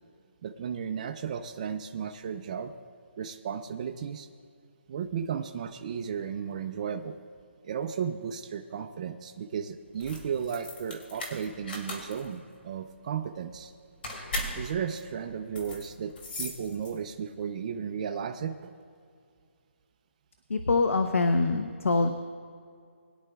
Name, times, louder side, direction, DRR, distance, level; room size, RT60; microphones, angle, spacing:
voice 1, 0.4-2.7 3.2-4.3 4.9-7.2 7.6-13.7 14.6-18.7, right 7 dB, 30° right, 4 dB, 0.5 m, -34 dB
sound 1, 9.9-17.2, left 1 dB, 50° left, 2.5 m, -39 dB
voice 2, 20.5-22.1, left 3 dB, 90° left, 7 dB, 0.8 m, -24 dB
21.5 x 10.0 x 2.3 m, 2.3 s
hypercardioid pair, 165°, 7 cm